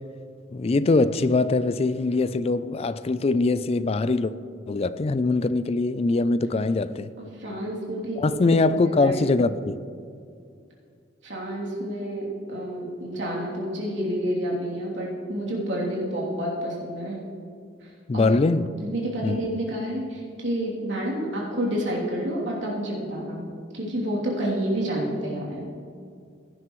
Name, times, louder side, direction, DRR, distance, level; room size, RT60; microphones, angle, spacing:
voice 1, 0.5-4.3 4.7-7.1 8.2-9.8 18.1-18.7 19.2-19.4, left 3 dB, 35° left, 0.4 m, -22 dB
voice 2, 7.3-8.6 8.8-9.4 11.2-17.2 18.1-18.3 18.8-23.4 23.7-25.7, equal, 80° right, 3.0 m, -29 dB
16.5 x 11.0 x 3.1 m
head